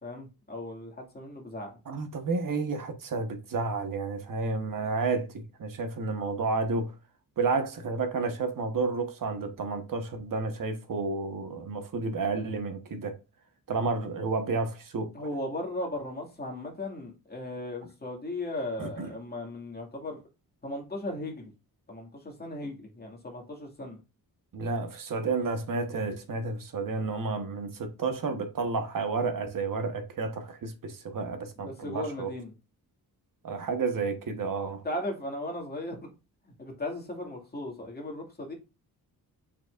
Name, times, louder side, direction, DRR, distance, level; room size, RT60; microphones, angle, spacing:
voice 1, 0.0-1.7 15.1-20.2 20.6-21.5 21.9-24.0 25.3-25.4 31.6-32.5 34.8-36.1 36.4-38.5, left 1 dB, 25° left, 2.3 m, -37 dB
voice 2, 1.9-6.9 7.4-13.2 13.7-15.1 18.8-19.1 24.5-32.3 33.4-34.8, right 4 dB, 55° right, 1.4 m, -31 dB
6.9 x 5.9 x 2.6 m
wide cardioid pair, 125°, 38 cm